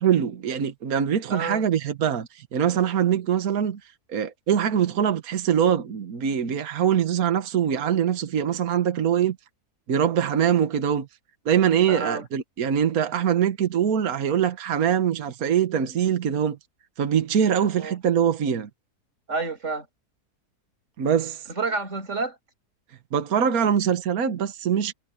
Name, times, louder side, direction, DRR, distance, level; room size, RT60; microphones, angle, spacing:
voice 1, 0.0-3.8 4.1-9.4 9.9-11.1 11.5-16.6 17.0-18.7 21.0-21.4 23.1-24.9, right 8 dB, 65° right, 1.7 m, -23 dB
voice 2, 1.3-1.6 11.9-12.2 17.8-18.0 19.3-19.9 21.5-22.4, right 4 dB, 50° right, 6.9 m, -29 dB
omnidirectional pair, 1.7 m